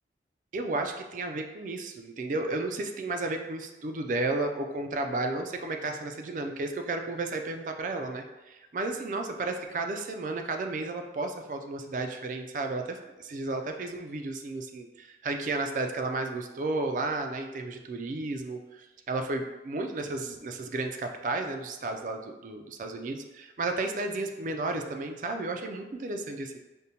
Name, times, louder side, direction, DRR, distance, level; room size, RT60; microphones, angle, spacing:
voice 1, 0.5-26.6, right 2 dB, 45° right, 5 dB, 0.3 m, -33 dB
5.1 x 2.1 x 2.8 m, 1.1 s
head